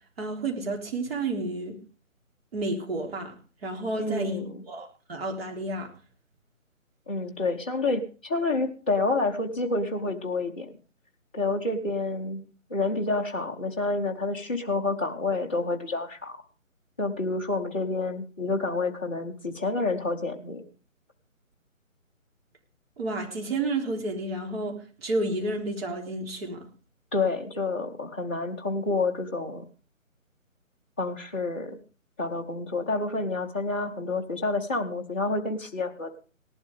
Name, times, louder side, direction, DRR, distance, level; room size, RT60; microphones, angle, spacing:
voice 1, 0.2-1.8 2.5-3.4 3.6-5.9 23.0-26.7, right 2 dB, 45° right, 1 dB, 3.7 m, -31 dB
voice 2, 4.0-4.6 7.1-10.7 11.3-12.4 12.7-16.4 17.0-20.7 27.1-29.6 31.0-31.8 32.2-36.2, left 3 dB, 10° left, -4 dB, 0.7 m, -29 dB
18.5 x 11.5 x 3.5 m, 0.35 s
figure-of-eight pair, 155°, 41 cm